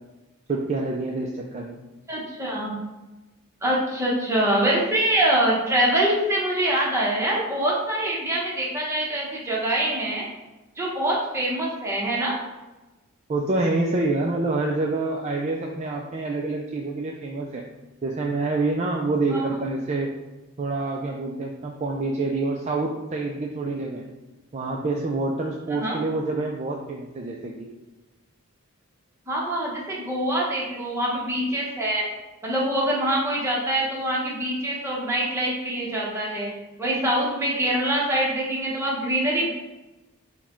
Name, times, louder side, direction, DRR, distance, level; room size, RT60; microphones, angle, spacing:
voice 1, 0.5-1.8 13.3-17.6 18.0-20.1 20.6-24.0 24.5-27.7, right 2 dB, 30° right, -1 dB, 0.3 m, -27 dB
voice 2, 2.1-2.7 3.6-10.2 10.8-12.4 19.3-19.4 25.7-26.0 29.3-32.1 32.4-36.5 36.8-39.5, right 1 dB, 15° right, -4 dB, 0.9 m, -24 dB
4.6 x 2.2 x 4.3 m, 1.1 s
head